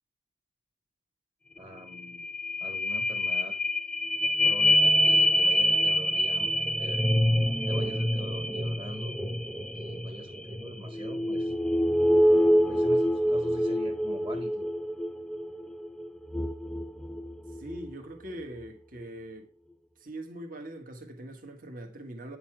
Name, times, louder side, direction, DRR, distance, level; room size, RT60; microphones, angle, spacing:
sound 1, 1.6-1.7 1.9-17.9 18.4-18.5, equal, 5° left, 0.5 m, -26 dB
voice 1, 1.6-2.3 2.6-3.5 4.4-7.1 7.7-9.2 9.7-11.5 12.7-14.7, right 1 dB, 30° right, 1.5 m, -43 dB
voice 2, 17.5-19.5 20.0-22.4, right 1 dB, 50° right, 1.6 m, -42 dB
9.9 x 6.9 x 4.7 m
head